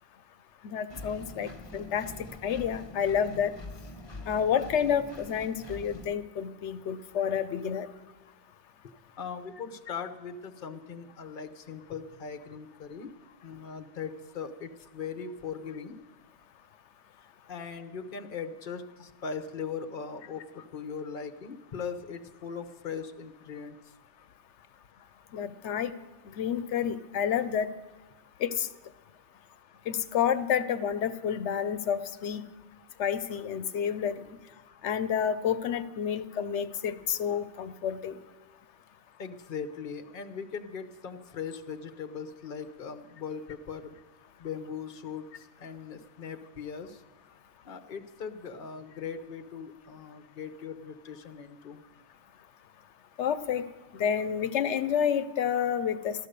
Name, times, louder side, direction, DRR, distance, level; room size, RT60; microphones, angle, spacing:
voice 1, 0.6-2.0 2.4-3.5 4.3-7.9 25.3-25.9 26.3-27.7 28.4-28.7 29.9-32.4 33.0-34.4 34.8-38.2 53.2-53.6 53.9-56.3, left 8 dB, 85° left, 12 dB, 1.0 m, -29 dB
Engine, 0.9-6.1, left 1 dB, 25° left, 1.1 m, -45 dB
voice 2, 8.8-13.1 13.4-16.0 17.2-23.9 39.2-43.9 44.4-47.0 47.6-51.8, left 6 dB, 50° left, 9 dB, 1.0 m, -40 dB
14.0 x 12.0 x 6.7 m, 1.1 s
omnidirectional pair, 1.1 m